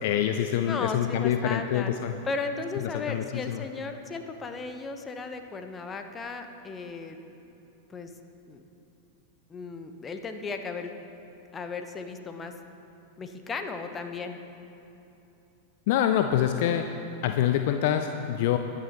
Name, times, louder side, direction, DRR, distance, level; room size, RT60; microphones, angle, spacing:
voice 1, 0.0-2.1 2.8-3.6 15.9-16.9 17.2-18.6, left 10 dB, 50° left, 7 dB, 0.5 m, -26 dB
voice 2, 0.7-1.9 2.2-7.2 7.9-8.1 8.5-8.6 9.5-10.9 11.5-12.5 13.2-14.4, left 4 dB, 20° left, 6 dB, 1.0 m, -35 dB
21.5 x 9.7 x 3.0 m, 2.9 s
figure-of-eight pair, 90°, 0 cm